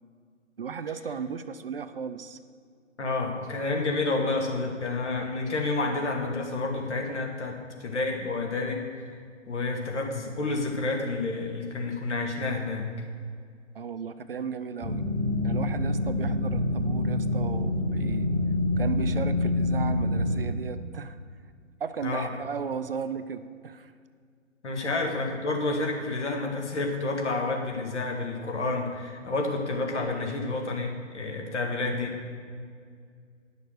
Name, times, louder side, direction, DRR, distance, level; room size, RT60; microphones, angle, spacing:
voice 1, 0.6-2.4 13.7-15.1 15.4-18.3 18.8-21.2 21.8-23.9 24.8-24.9, right 6 dB, 50° right, 10 dB, 0.5 m, -35 dB
voice 2, 3.0-9.1 9.5-12.9 22.0-22.3 24.6-32.2, left 3 dB, 60° left, 2 dB, 2.0 m, -29 dB
sound 1, 14.8-20.4, left 1 dB, 10° left, 1.4 m, -26 dB
10.5 x 6.7 x 6.4 m, 2.1 s
figure-of-eight pair, 145°, 38 cm